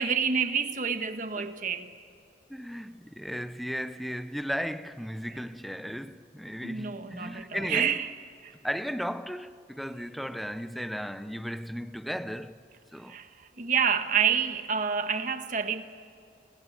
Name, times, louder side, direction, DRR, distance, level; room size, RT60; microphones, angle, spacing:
voice 1, 0.0-1.9 6.6-8.1 8.4-8.5 13.1-13.3 13.6-15.8, right 7 dB, 45° right, 1.4 m, -28 dB
voice 2, 2.5-8.0 8.6-12.6 12.9-13.2, equal, ahead, 0.6 m, -35 dB
30.0 x 25.5 x 6.6 m
head